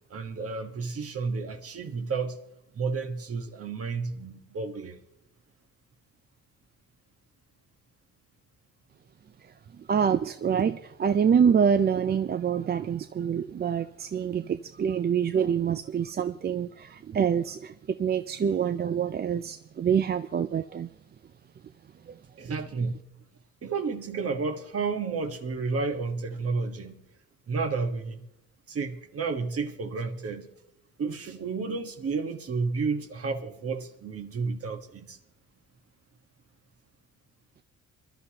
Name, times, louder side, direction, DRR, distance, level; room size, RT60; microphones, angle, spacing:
voice 1, 0.1-2.4 2.7-5.0 22.4-22.9 23.6-27.0 27.5-28.2 28.7-30.5 31.0-35.2, right 4 dB, 50° right, 1.4 m, -31 dB
voice 2, 9.9-17.7 18.0-20.9, right 7 dB, 35° right, 0.4 m, -26 dB
23.5 x 12.0 x 2.9 m
cardioid pair, 90°, 30 cm